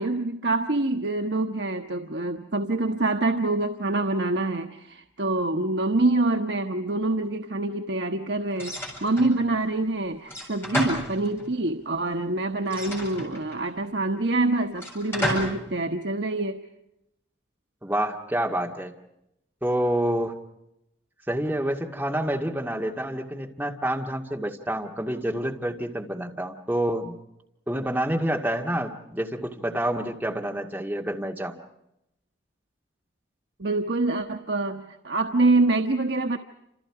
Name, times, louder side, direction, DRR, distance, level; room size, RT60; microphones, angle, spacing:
voice 1, 0.0-8.7 9.0-16.6 33.6-36.4, right 2 dB, 75° right, 5 dB, 1.1 m, -25 dB
sound 1, 8.6-9.4 10.3-11.6 12.7-13.7 14.8-15.7, equal, 10° left, 7.5 m, -31 dB
voice 2, 17.8-18.9 19.6-20.4 21.3-27.2 27.7-31.6, right 1 dB, 10° right, 1 dB, 2.1 m, -28 dB
29.0 x 28.0 x 4.9 m, 0.84 s
head